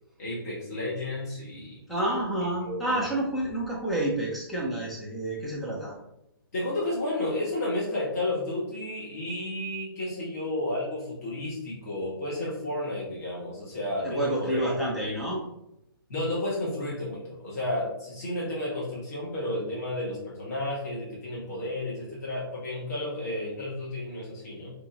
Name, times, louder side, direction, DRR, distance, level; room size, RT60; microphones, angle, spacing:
voice 1, 0.2-1.8 2.6-3.0 6.5-14.7 15.1-15.2 16.1-24.7, left 1 dB, 40° left, -6 dB, 1.5 m, -32 dB
voice 2, 1.9-5.9 14.0-15.4, right 1 dB, ahead, -5 dB, 0.4 m, -29 dB
4.7 x 2.5 x 2.8 m, 0.84 s
hypercardioid pair, 165°, 12 cm